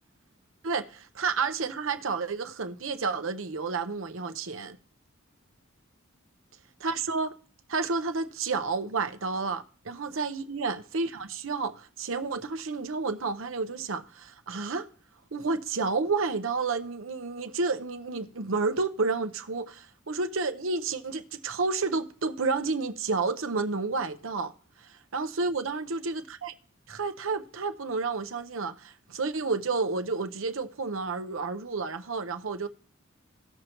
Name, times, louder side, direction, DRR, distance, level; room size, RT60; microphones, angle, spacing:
voice 1, 0.6-4.8 6.8-7.3 7.7-14.9 15.3-24.5 24.9-26.5 26.9-32.7, right 4 dB, 80° right, 0.8 m, -30 dB
18.0 x 6.5 x 3.0 m
head